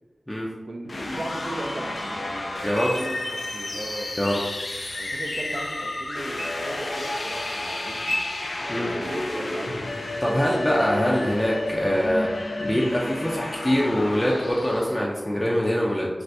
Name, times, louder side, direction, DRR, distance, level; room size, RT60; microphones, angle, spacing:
voice 1, 0.6-2.5 2.9-4.1 5.0-8.2 8.7-9.8, right 1 dB, 70° right, 2 dB, 0.4 m, -37 dB
sound 1, 0.9-15.0, left 2 dB, 75° left, 0.4 m, -31 dB
sound 2, 0.9-14.9, equal, 90° right, 0.8 m, -42 dB
voice 2, 2.6-3.0 4.2-4.4 8.7-8.9 10.2-16.1, equal, 20° left, -4 dB, 0.5 m, -24 dB
sound 3, 9.9-10.4 11.2-12.0 12.6-13.1 13.4-13.6 13.9-14.3, equal, 60° left, 0.8 m, -43 dB
2.6 x 2.5 x 3.3 m, 1.2 s
wide cardioid pair, 60°, 0 cm